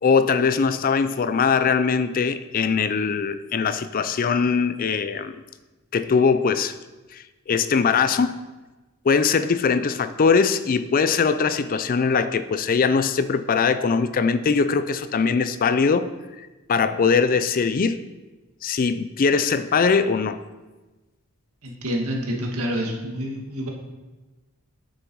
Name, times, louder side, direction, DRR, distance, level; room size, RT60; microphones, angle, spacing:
voice 1, 0.0-5.3 5.9-6.8 7.1-8.4 9.0-16.1 16.4-18.0 18.6-20.4, left 5 dB, 40° left, 0.4 m, -21 dB
voice 2, 21.6-23.7, equal, 80° right, 1.9 m, -28 dB
9.0 x 6.9 x 4.7 m
head